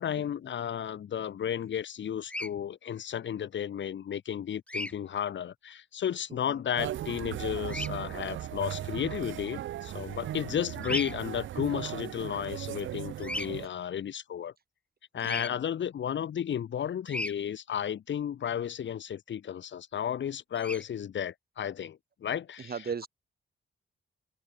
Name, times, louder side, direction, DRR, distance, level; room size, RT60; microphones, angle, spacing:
voice 1, 0.0-14.5 15.1-22.7, left 9 dB, 75° left, 1.2 m, -33 dB
Bird vocalization bird call bird song, 2.2-2.5 4.7-4.9 7.7-7.9 10.8-11.1 13.2-13.5 15.2-15.5 17.1-17.3 20.5-20.8, left 1 dB, 5° left, 0.5 m, -35 dB
voice 2, 6.3-6.6 10.5-10.6 15.2-15.6 22.6-23.1, right 6 dB, 55° right, 5.3 m, -39 dB
sound 1, 6.8-13.7, right 12 dB, 85° right, 0.5 m, -37 dB
open air
wide cardioid pair, 110°, 19 cm